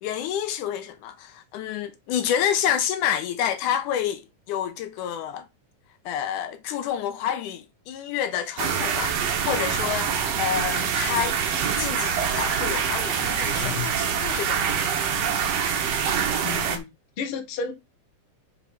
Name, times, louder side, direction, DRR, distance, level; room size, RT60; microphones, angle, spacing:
voice 1, 0.0-5.5 6.1-10.1 10.4-11.4 11.8-14.8, left 9 dB, 80° left, 2.2 m, -28 dB
sound 1, 8.6-16.8, right 7 dB, 60° right, 2.1 m, -25 dB
voice 2, 13.6-13.9 16.4-16.9 17.2-17.7, left 6 dB, 50° left, 1.9 m, -31 dB
5.7 x 5.5 x 5.7 m
omnidirectional pair, 3.6 m